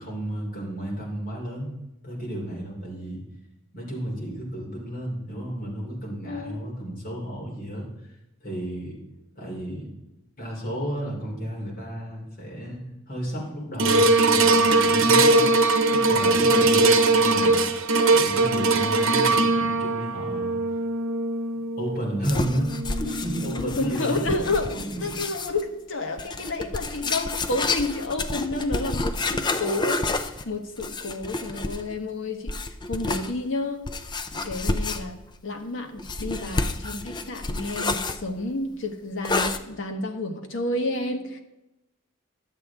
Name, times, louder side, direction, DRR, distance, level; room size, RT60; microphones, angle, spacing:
voice 1, 0.0-1.7 2.0-3.2 3.7-7.9 8.4-9.0 9.4-9.9 10.4-15.5 15.9-17.6 18.1-20.6 21.8-22.7 23.0-24.4 24.7-25.0, right 1 dB, 45° left, -3 dB, 3.3 m, -32 dB
voice 2, 6.3-6.9 15.3-15.5 18.0-18.3 18.5-19.4 23.5-33.8 34.3-41.4, left 2 dB, 65° left, 4 dB, 1.2 m, -31 dB
sound 1, 13.8-24.2 24.7-24.8, right 2 dB, 75° right, 0.9 m, -21 dB
sound 2, 22.2-25.6 26.2-31.9 32.5-33.3 33.9-35.3 36.0-38.2 39.2-39.6, left 3 dB, 20° left, 0.4 m, -29 dB
11.5 x 8.0 x 3.5 m, 0.93 s
head